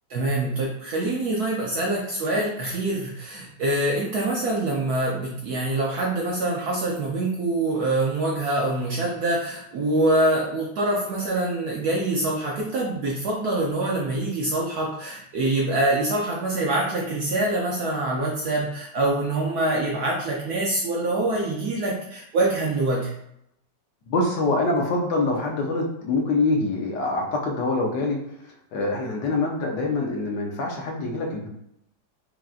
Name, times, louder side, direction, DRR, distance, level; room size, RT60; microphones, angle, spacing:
voice 1, 0.1-23.1, right 2 dB, 70° right, -2 dB, 1.0 m, -25 dB
voice 2, 24.1-28.2 28.7-31.5, left 2 dB, 70° left, 0 dB, 1.4 m, -25 dB
5.6 x 2.5 x 2.4 m, 0.76 s
omnidirectional pair, 2.1 m